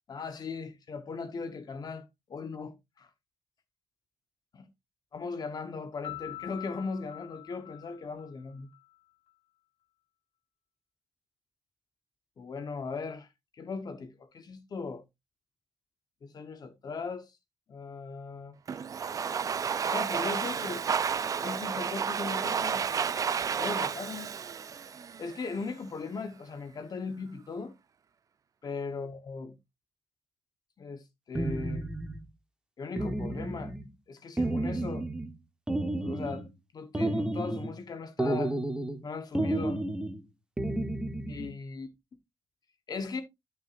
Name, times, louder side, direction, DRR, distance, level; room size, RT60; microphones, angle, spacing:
voice 1, 0.1-3.1 4.6-4.7 5.1-8.7 12.4-13.3 13.6-15.0 16.2-17.3 17.7-18.5 19.8-20.8 21.4-23.0 23.6-24.3 25.2-27.7 28.6-29.6 30.8-31.9 32.8-33.7 34.1-35.1 36.0-36.5 36.7-38.6 39.0-39.8 41.3-41.9 42.9-43.2, left 4 dB, 45° left, 1.1 m, -38 dB
Piano, 6.0-8.8, left 15 dB, 85° left, 2.0 m, -44 dB
Domestic sounds home sounds, 18.7-25.6, right 6 dB, 35° right, 0.4 m, -31 dB
sound 1, 31.3-32.2 33.0-33.9 34.4-35.3 35.7-36.5 36.9-37.8 38.2-39.0 39.3-40.2 40.6-41.5, right 1 dB, 10° right, 1.0 m, -31 dB
13.0 x 6.0 x 2.6 m
wide cardioid pair, 150°, 10 cm